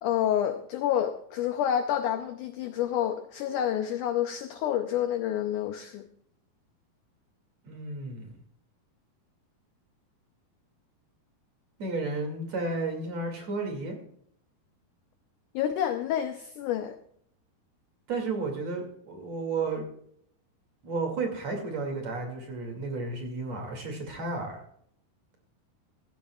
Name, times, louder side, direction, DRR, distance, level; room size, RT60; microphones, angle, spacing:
voice 1, 0.0-6.0 15.5-17.0, left 10 dB, 85° left, 8 dB, 1.8 m, -28 dB
voice 2, 7.6-8.3 11.8-14.0 18.1-19.8 20.8-24.6, right 3 dB, 45° right, 3 dB, 3.4 m, -32 dB
17.0 x 15.0 x 2.4 m, 0.68 s
omnidirectional pair, 4.5 m